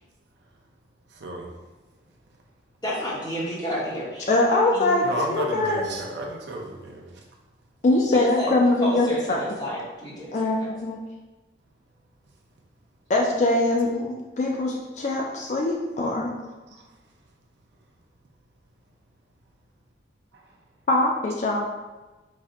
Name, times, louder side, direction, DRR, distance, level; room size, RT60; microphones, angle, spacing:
voice 1, 1.1-1.6 5.0-7.2 16.7-16.8 20.3-20.4, right 1 dB, 65° right, 1 dB, 0.5 m, -33 dB
voice 2, 2.8-5.0 8.1-8.5 8.8-10.7, equal, 20° left, -8 dB, 1.0 m, -32 dB
voice 3, 4.3-5.8 7.8-9.4 10.3-11.0 13.1-16.3 20.9-21.7, left 2 dB, 40° left, -1 dB, 0.3 m, -22 dB
4.1 x 2.1 x 3.6 m, 1.1 s
head